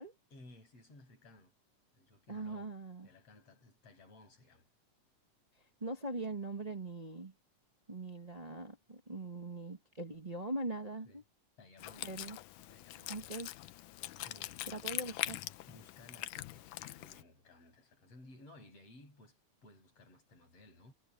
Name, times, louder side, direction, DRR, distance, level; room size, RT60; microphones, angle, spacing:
voice 1, 0.3-1.5 1.9-2.8 3.0-4.7 11.0-11.2 11.6-12.2 12.7-13.2 14.2-14.8 15.7-20.9, left 2 dB, 50° left, 9.2 m, -58 dB
voice 2, 2.3-3.1 5.8-7.3 7.9-11.2 12.0-12.4 13.1-13.5 14.7-15.4, right 2 dB, 45° right, 0.5 m, -41 dB
Wind instrument woodwind instrument, 11.8-17.2, left 15 dB, 90° left, 2.4 m, -43 dB
omnidirectional pair, 3.5 m